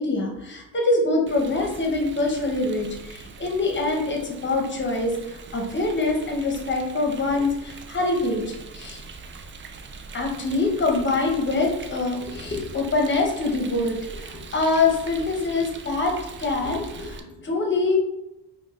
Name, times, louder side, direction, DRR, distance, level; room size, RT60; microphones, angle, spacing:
voice 1, 0.0-9.0 10.1-18.0, left 3 dB, 30° left, 1 dB, 0.9 m, -25 dB
Rain, 1.3-17.2, right 4 dB, 35° right, 0.4 m, -42 dB
5.2 x 2.4 x 2.5 m, 0.93 s
cardioid pair, 85°, 38 cm